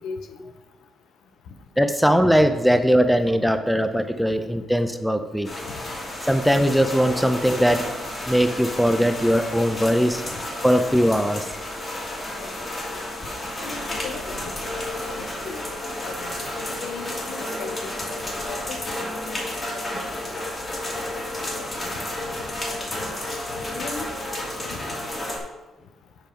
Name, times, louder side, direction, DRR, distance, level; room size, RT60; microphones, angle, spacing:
voice 1, 1.8-5.5 6.2-7.9 8.3-10.2 10.6-11.5, equal, ahead, 8 dB, 0.6 m, -20 dB
sound 1, 5.4-25.4, left 1 dB, 35° left, 2.1 m, -32 dB
voice 2, 13.6-14.7 15.1-15.6 16.0-17.9 18.5-19.4 19.7-20.4 21.8-22.0 22.7-23.2 23.7-24.1 24.6-24.9, left 5 dB, 85° left, 6 dB, 0.7 m, -38 dB
7.2 x 5.1 x 4.5 m, 1.1 s
cardioid pair, 90°, 0 cm